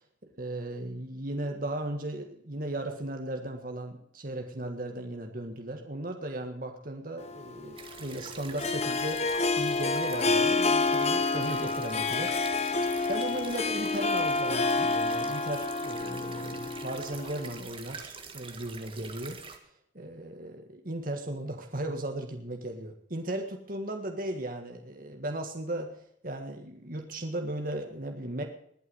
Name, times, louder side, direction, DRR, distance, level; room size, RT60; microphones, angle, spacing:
voice 1, 0.4-9.2 9.6-12.3 13.1-19.4 19.9-25.9 26.2-28.4, right 1 dB, 45° right, 4 dB, 1.7 m, -36 dB
Harp, 7.2-17.6, left 3 dB, 35° left, 1.0 m, -29 dB
sound 1, 7.8-19.6, right 5 dB, 30° right, 1.6 m, -45 dB
20.5 x 8.4 x 6.4 m, 0.68 s
head